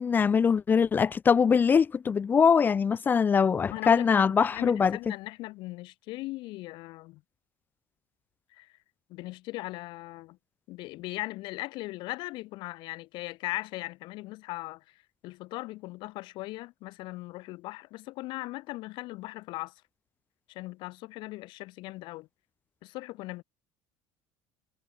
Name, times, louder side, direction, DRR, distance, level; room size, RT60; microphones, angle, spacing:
voice 1, 0.0-5.0, left 6 dB, 20° left, 0.8 m, -23 dB
voice 2, 3.7-7.2 8.5-8.7 9.1-10.4 10.7-19.7 20.5-22.3 22.8-23.4, left 20 dB, 55° left, 3.8 m, -39 dB
cardioid pair, 160°, 9 cm